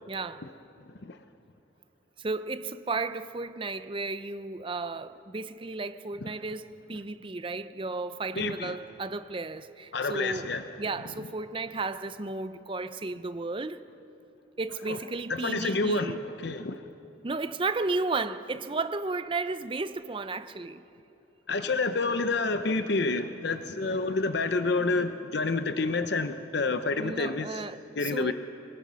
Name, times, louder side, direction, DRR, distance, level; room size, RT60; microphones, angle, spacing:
voice 1, 0.1-0.4 2.2-10.5 10.8-13.8 14.6-16.2 17.2-20.8 27.0-28.3, right 3 dB, 25° right, 0.6 m, -33 dB
voice 2, 8.4-8.8 9.9-10.6 14.9-15.0 15.3-16.8 21.5-27.6 28.0-28.3, left 3 dB, 60° left, 0.7 m, -28 dB
23.5 x 20.0 x 6.2 m
head